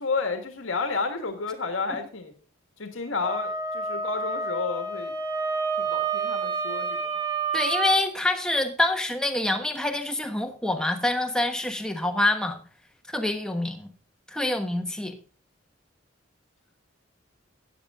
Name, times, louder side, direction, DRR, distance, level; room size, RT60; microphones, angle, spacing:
voice 1, 0.0-2.3 2.8-5.1 5.8-7.1, left 4 dB, 90° left, 6 dB, 1.7 m, -31 dB
Wind instrument woodwind instrument, 3.2-8.0, right 4 dB, 20° right, 1.3 m, -29 dB
voice 2, 7.5-12.6 13.1-13.9 14.3-15.1, left 2 dB, 5° left, 5 dB, 1.1 m, -26 dB
13.0 x 8.9 x 3.7 m, 0.39 s
head